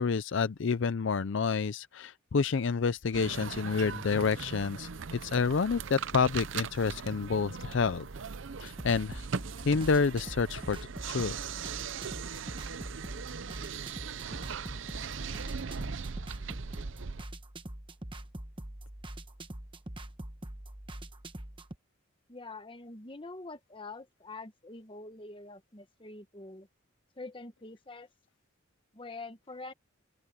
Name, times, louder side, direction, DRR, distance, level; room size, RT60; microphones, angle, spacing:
voice 1, 0.0-8.0 8.6-9.3 9.6-10.8 11.1-11.4, left 5 dB, 60° left, 0.5 m, -29 dB
sound 1, 3.1-17.2, right 6 dB, 65° right, 0.6 m, -39 dB
sound 2, 8.7-21.8, right 1 dB, 25° right, 1.1 m, -44 dB
voice 2, 22.3-26.7 27.2-28.1 28.9-29.7, left 3 dB, 25° left, 1.1 m, -45 dB
open air
head